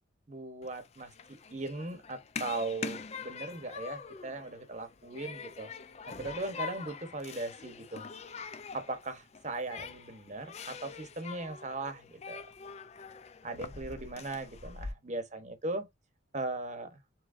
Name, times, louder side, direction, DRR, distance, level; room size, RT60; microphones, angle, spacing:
voice 1, 0.3-5.7 6.1-8.1 8.7-12.4 13.4-15.9 16.3-17.0, right 2 dB, 35° right, 0.9 m, -38 dB
Human group actions, 0.6-14.9, left 5 dB, 35° left, 0.4 m, -44 dB
6.1 x 3.1 x 2.5 m
head